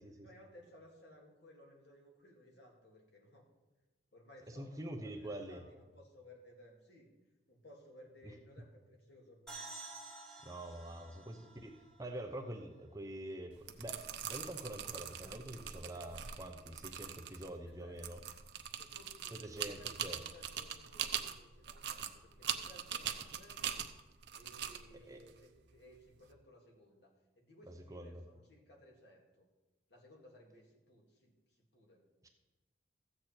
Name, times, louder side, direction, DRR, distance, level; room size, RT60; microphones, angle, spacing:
voice 1, 0.2-3.5 4.1-7.1 7.5-9.7 17.6-18.2 18.7-23.8 24.3-29.5 29.9-32.0, left 1 dB, 60° left, 0 dB, 2.1 m, -60 dB
voice 2, 4.5-5.6 10.4-11.7 12.0-13.5 13.8-14.0 14.3-18.2 19.3-20.2 25.1-25.2 27.9-28.2 32.2-32.3, right 1 dB, 15° right, 3 dB, 0.8 m, -45 dB
sound 1, 9.5-13.0, right 3 dB, 5° left, 1.8 m, -52 dB
sound 2, 13.5-26.3, right 9 dB, 60° right, 0.7 m, -43 dB
14.0 x 8.2 x 4.5 m, 1.1 s
head